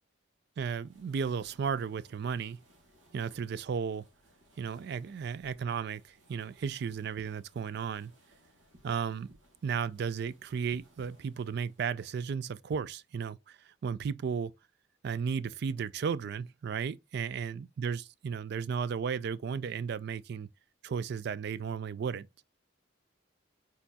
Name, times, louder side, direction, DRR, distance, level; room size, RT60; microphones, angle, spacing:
voice 1, 0.6-2.6 3.1-4.0 4.6-6.0 6.3-8.1 8.8-9.4 9.6-14.5 15.0-20.5 20.8-22.3, right 6 dB, 55° right, 0.3 m, -34 dB
sound 1, 0.8-12.0, right 1 dB, 75° right, 1.5 m, -62 dB
4.3 x 4.2 x 2.8 m
head